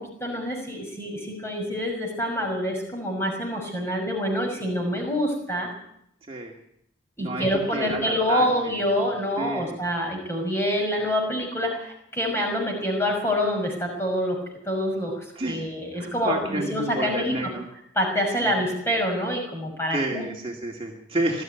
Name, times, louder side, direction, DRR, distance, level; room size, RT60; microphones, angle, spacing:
voice 1, 0.0-5.7 7.2-14.4 14.7-17.5 18.0-20.3, equal, 15° left, 1 dB, 6.0 m, -26 dB
voice 2, 7.7-8.8 9.4-9.8 15.4-15.6 15.9-17.7 18.4-18.5 19.9-21.4, right 1 dB, 30° right, -1 dB, 2.3 m, -30 dB
20.0 x 13.5 x 9.5 m, 0.76 s
head